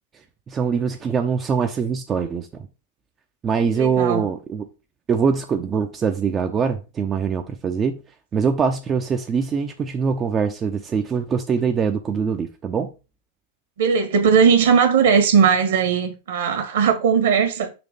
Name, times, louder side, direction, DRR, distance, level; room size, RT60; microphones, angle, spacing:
voice 1, 0.5-2.7 3.4-4.7 5.1-8.0 8.3-12.9, right 6 dB, 25° right, 0.6 m, -23 dB
voice 2, 3.7-4.3 13.8-17.7, right 6 dB, 60° right, 1.6 m, -18 dB
6.0 x 3.2 x 5.1 m
figure-of-eight pair, 90°, 0 cm